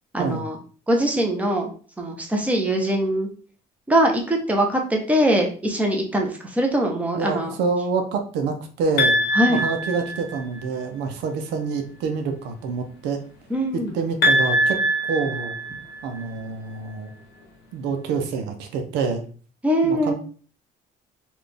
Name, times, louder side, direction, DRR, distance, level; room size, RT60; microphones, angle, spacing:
voice 1, 0.1-0.6 0.9-1.7 2.0-3.3 3.9-7.5 9.3-9.6 13.5-13.9 19.6-20.1, right 1 dB, 10° right, 1 dB, 0.9 m, -22 dB
voice 2, 7.1-9.2 9.5-13.2 13.7-14.8 15.1-15.6 16.0-17.1 17.7-19.2 19.8-20.1, right 5 dB, 85° right, 5 dB, 0.7 m, -27 dB
sound 1, 9.0-10.6 14.2-16.2, equal, 90° left, 1.0 m, -22 dB
3.9 x 2.5 x 3.4 m, 0.41 s
cardioid pair, 110°, 17 cm